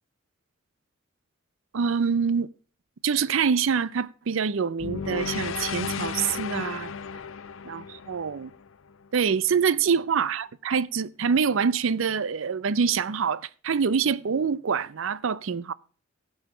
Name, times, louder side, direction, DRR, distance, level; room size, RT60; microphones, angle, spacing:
voice 1, 1.7-2.5 3.0-6.9 7.6-8.5 9.1-15.7, right 6 dB, 70° right, 0.5 m, -25 dB
sound 1, 4.8-9.1, left 6 dB, 70° left, 0.6 m, -34 dB
16.0 x 5.6 x 4.9 m
head